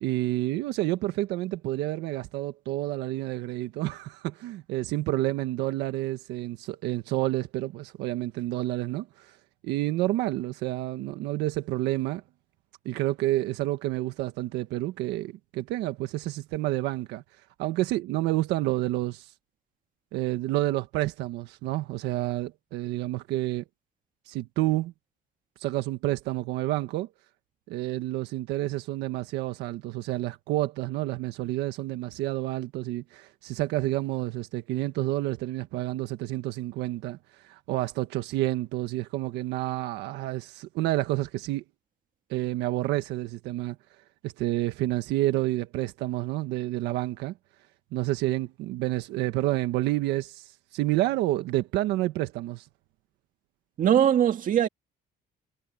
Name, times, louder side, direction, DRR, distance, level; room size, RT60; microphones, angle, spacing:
voice 1, 0.0-9.4 9.6-12.2 12.8-17.2 17.6-19.3 20.1-23.6 24.3-24.9 25.6-27.1 27.7-41.6 42.3-43.8 44.2-47.3 47.9-52.7, right 16 dB, 90° right, 1.6 m, -29 dB
voice 2, 53.8-54.7, right 10 dB, 50° right, 2.3 m, -21 dB
cardioid pair, 110°, 17 cm